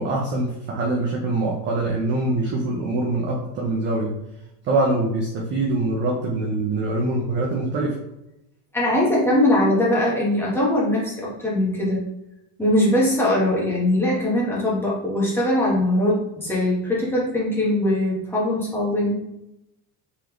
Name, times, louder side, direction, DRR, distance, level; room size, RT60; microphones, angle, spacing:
voice 1, 0.0-4.1 4.6-8.0, right 2 dB, 25° right, -2 dB, 0.4 m, -24 dB
voice 2, 8.7-12.0 12.6-19.1, left 1 dB, 5° left, -6 dB, 1.0 m, -21 dB
3.8 x 3.2 x 2.9 m, 0.88 s
cardioid pair, 160°, 49 cm